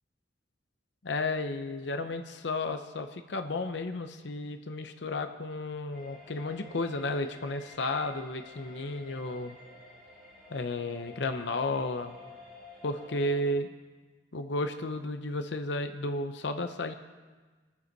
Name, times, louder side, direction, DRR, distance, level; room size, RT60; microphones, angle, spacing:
voice 1, 1.0-9.6 10.5-12.2 12.8-13.7 14.3-16.9, left 2 dB, 70° left, 7 dB, 0.7 m, -33 dB
sound 1, 5.9-13.4, left 2 dB, ahead, 5.5 m, -51 dB
22.5 x 9.8 x 4.1 m, 1.4 s
head